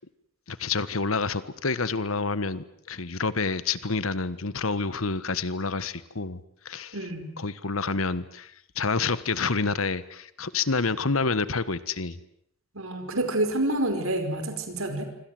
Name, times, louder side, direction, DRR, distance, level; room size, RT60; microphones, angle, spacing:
voice 1, 0.5-7.0 7.4-12.2, left 4 dB, 90° left, 15 dB, 1.4 m, -28 dB
voice 2, 6.9-7.3 12.7-15.0, right 1 dB, 90° right, 7 dB, 4.8 m, -28 dB
27.5 x 25.0 x 7.8 m, 0.70 s
head